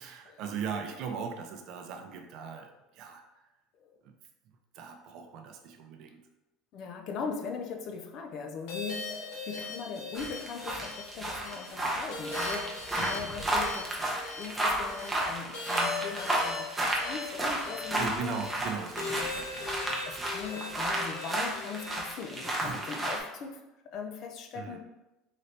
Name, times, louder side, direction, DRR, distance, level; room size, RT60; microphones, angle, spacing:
voice 1, 0.0-3.5 4.0-4.1 4.7-6.2 12.9-13.4 17.9-20.0 22.6-22.9 24.5-24.8, right 6 dB, 50° right, 4 dB, 0.5 m, -39 dB
voice 2, 6.7-14.1 14.3-18.4 20.1-24.8, left 5 dB, 45° left, 4 dB, 0.5 m, -40 dB
sound 1, 8.7-23.1, left 3 dB, 70° left, 1.0 m, -41 dB
sound 2, 10.1-23.2, right 1 dB, 5° right, 0.7 m, -32 dB
4.0 x 2.7 x 3.2 m, 0.99 s
cardioid pair, 155°, 0 cm